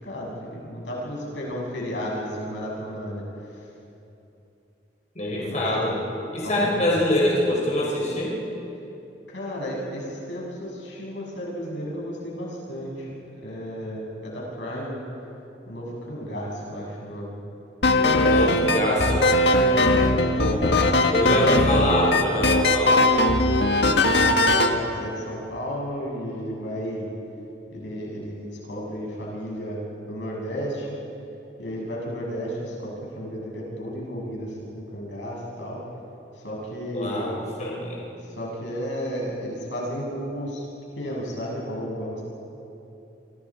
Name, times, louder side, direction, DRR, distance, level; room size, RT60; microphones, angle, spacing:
voice 1, 0.0-3.2 5.4-6.0 6.4-7.0 9.3-13.1 13.4-15.0 15.7-17.4 18.0-18.7 19.6-20.1 21.1-21.6 24.1-27.1 27.7-29.8 30.1-31.0 31.6-35.8 36.4-37.4 38.4-40.6 41.0-42.2, equal, 90° left, -3 dB, 7.4 m, -33 dB
voice 2, 5.2-5.9 6.3-8.4 18.2-19.2 20.4-20.8 21.1-23.1 36.9-38.0, left 1 dB, 40° left, -3 dB, 4.2 m, -24 dB
sound 1, 17.8-24.7, left 1 dB, 65° left, 1.6 m, -19 dB
27.5 x 25.0 x 5.0 m, 2.9 s
head